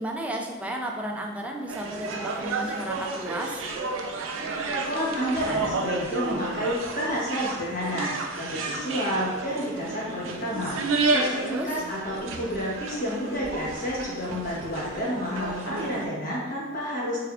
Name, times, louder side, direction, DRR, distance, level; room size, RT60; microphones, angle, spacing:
voice 1, 0.0-3.6 11.4-11.8, right 1 dB, 5° right, 1 dB, 0.3 m, -33 dB
sound 1, 1.7-16.1, right 3 dB, 90° right, 0.4 m, -31 dB
voice 2, 4.7-10.8 11.1-17.2, equal, 45° left, -6 dB, 1.0 m, -30 dB
3.4 x 3.3 x 2.3 m, 1.3 s
head